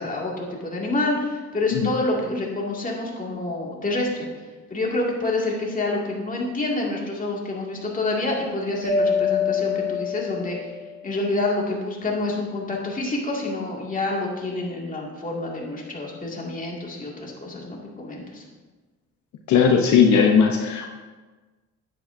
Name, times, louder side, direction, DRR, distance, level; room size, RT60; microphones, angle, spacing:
voice 1, 0.0-4.3 4.7-10.7 11.0-18.5, left 2 dB, 25° left, -3 dB, 2.2 m, -27 dB
Mallet percussion, 8.8-10.9, left 5 dB, 70° right, 2.1 m, -24 dB
voice 2, 19.5-20.9, left 6 dB, 70° left, 1 dB, 0.8 m, -17 dB
10.0 x 8.3 x 2.7 m, 1.3 s
cardioid pair, 90°, 30 cm